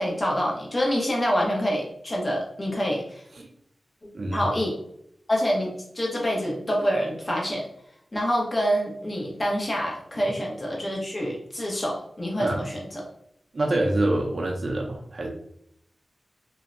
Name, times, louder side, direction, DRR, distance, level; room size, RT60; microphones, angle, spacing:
voice 1, 0.0-3.2 4.3-4.7 5.3-7.7 8.1-13.0, equal, 35° left, -2 dB, 0.9 m, -26 dB
voice 2, 4.1-4.4 12.4-12.6 13.5-15.3, right 1 dB, 55° right, 0 dB, 0.4 m, -26 dB
2.6 x 2.1 x 2.5 m, 0.71 s
cardioid pair, 55°, 0 cm